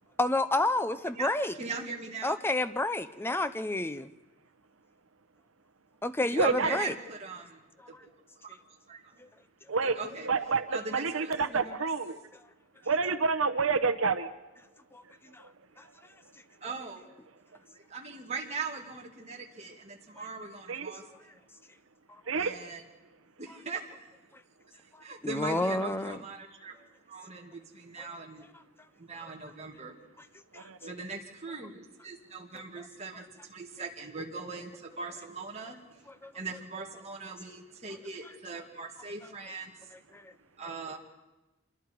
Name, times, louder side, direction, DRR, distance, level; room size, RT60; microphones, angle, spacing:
voice 1, 0.2-1.5 2.2-4.1 6.0-6.9 7.9-8.0 9.2-9.3 14.9-15.0 15.3-15.4 15.8-15.9 25.2-26.2 28.0-28.1 30.5-30.7 36.2-36.3 40.1-40.3, left 2 dB, 10° left, 12 dB, 0.6 m, -30 dB
voice 2, 1.6-2.4 6.3-8.0 8.4-8.6 8.9-9.2 9.8-10.3 10.7-11.8 16.6-17.1 17.7-21.0 22.3-22.8 23.4-24.0 24.7-26.7 27.1-28.5 29.0-29.9 30.9-33.2 33.5-35.8 36.3-39.7 40.6-41.0, right 4 dB, 30° right, 0 dB, 2.4 m, -40 dB
voice 3, 6.4-6.8 9.7-10.0 10.2-12.2 12.8-14.3 20.7-20.9 22.3-22.5 30.5-30.9, right 4 dB, 75° right, 9 dB, 0.9 m, -28 dB
27.0 x 22.0 x 4.7 m, 1.1 s
head